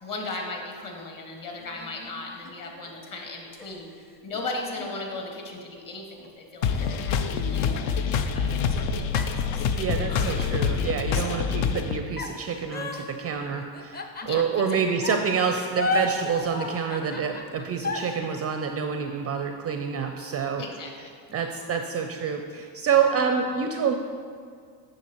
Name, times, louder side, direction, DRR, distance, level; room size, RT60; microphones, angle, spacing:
voice 1, 0.0-3.9 4.2-7.1 7.4-9.7 10.1-10.4 11.1-11.6 14.2-14.8 20.6-21.4, left 2 dB, 40° left, 0 dB, 1.8 m, -37 dB
sound 1, 1.5-2.9 3.6-5.8 6.2-6.3 6.7-8.8 9.1-11.1 12.2-14.7 15.0-18.2, left 2 dB, 20° left, 0.6 m, -35 dB
sound 2, 6.6-12.0, left 6 dB, 65° left, 0.7 m, -26 dB
voice 2, 9.8-20.6 21.3-23.9, right 6 dB, 30° right, 5 dB, 0.4 m, -27 dB
9.3 x 6.4 x 3.0 m, 2.1 s
supercardioid pair, 90°, 50 cm